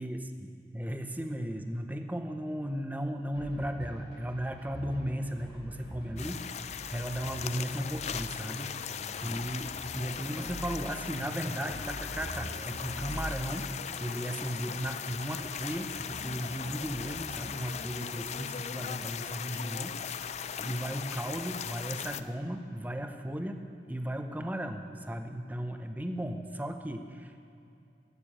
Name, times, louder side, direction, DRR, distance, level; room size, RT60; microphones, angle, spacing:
voice 1, 0.0-8.7 9.2-13.7 14.0-23.6 23.9-27.4, equal, 10° right, 6 dB, 0.7 m, -36 dB
sound 1, 3.3-17.9, equal, 70° left, 3.4 m, -45 dB
sound 2, 6.2-22.2, left 7 dB, 40° left, 0.4 m, -39 dB
15.0 x 6.8 x 9.8 m, 2.6 s
head